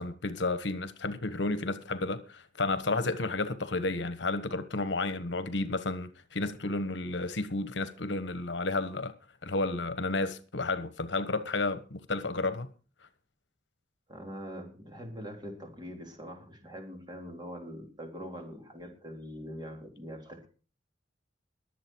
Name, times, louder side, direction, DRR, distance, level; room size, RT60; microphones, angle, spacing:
voice 1, 0.0-9.1 9.4-12.7, left 2 dB, 75° left, 1.3 m, -32 dB
voice 2, 14.1-20.5, equal, 25° right, 3.8 m, -43 dB
22.0 x 7.7 x 4.6 m
head